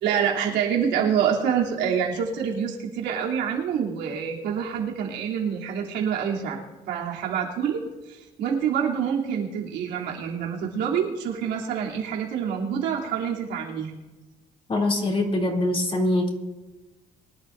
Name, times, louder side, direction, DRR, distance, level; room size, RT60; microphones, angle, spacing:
voice 1, 0.0-6.6 6.9-13.9, right 7 dB, 85° right, -2 dB, 3.2 m, -26 dB
voice 2, 14.7-16.3, left 1 dB, 35° left, 0 dB, 3.1 m, -23 dB
23.5 x 12.0 x 2.7 m, 1.2 s
cardioid pair, 110°, 17 cm